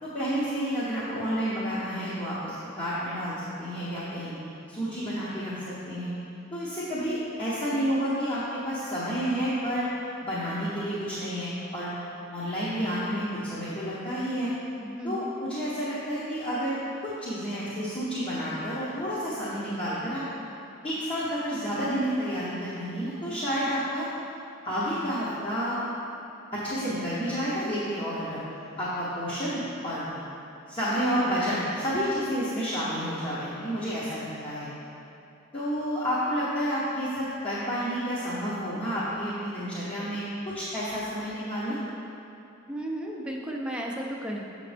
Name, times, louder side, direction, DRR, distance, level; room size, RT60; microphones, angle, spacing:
voice 1, 0.0-4.3 4.7-5.5 5.9-6.1 6.5-9.9 10.2-11.9 12.3-14.5 15.0-20.2 20.8-24.1 24.6-25.8 26.5-28.4 28.8-30.2 30.7-34.7 35.5-41.8, equal, 30° left, -10 dB, 1.1 m, -30 dB
voice 2, 14.8-15.3 42.7-44.4, right 1 dB, 5° right, -2 dB, 0.6 m, -34 dB
6.9 x 6.7 x 3.4 m, 2.9 s
head